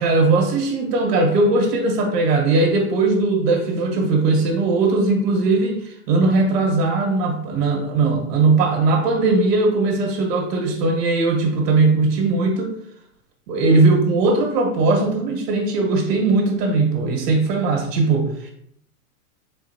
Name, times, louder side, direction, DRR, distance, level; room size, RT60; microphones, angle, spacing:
voice 1, 0.0-12.8 13.5-18.5, right 3 dB, 75° right, 2 dB, 1.5 m, -19 dB
4.3 x 3.9 x 2.8 m, 0.71 s
supercardioid pair, 145°, 48 cm